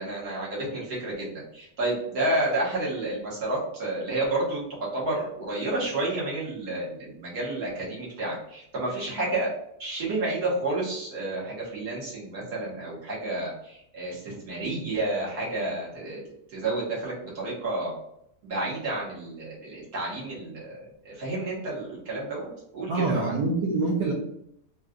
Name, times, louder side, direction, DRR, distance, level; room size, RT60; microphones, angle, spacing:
voice 1, 0.0-9.5 9.8-16.2 16.5-17.9 18.4-23.4, right 2 dB, 65° right, -5 dB, 1.7 m, -30 dB
voice 2, 22.9-24.1, right 3 dB, 85° right, -3 dB, 1.4 m, -25 dB
4.1 x 2.3 x 2.4 m, 0.75 s
omnidirectional pair, 1.8 m